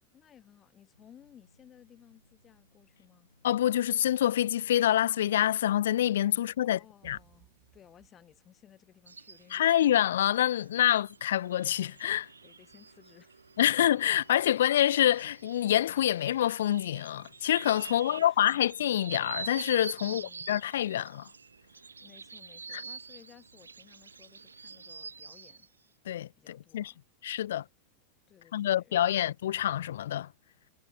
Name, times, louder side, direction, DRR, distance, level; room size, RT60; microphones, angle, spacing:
voice 1, 0.1-3.3 6.6-9.8 12.4-13.4 17.8-18.5 20.0-20.5 22.0-25.7 26.3-27.0 28.3-29.1, left 9 dB, 25° left, 3.2 m, -58 dB
sound 1, 0.9-9.9, left 1 dB, 85° left, 4.0 m, -69 dB
voice 2, 3.4-7.2 9.5-12.3 13.6-20.2 20.5-21.3 22.7-22.8 26.1-26.9 27.2-27.6 28.5-30.3, left 11 dB, 60° left, 0.3 m, -26 dB
sound 2, 7.0-8.8, right 17 dB, 35° right, 6.8 m, -62 dB
sound 3, 9.1-25.7, right 5 dB, 75° right, 1.2 m, -46 dB
figure-of-eight pair, 90°, 0 cm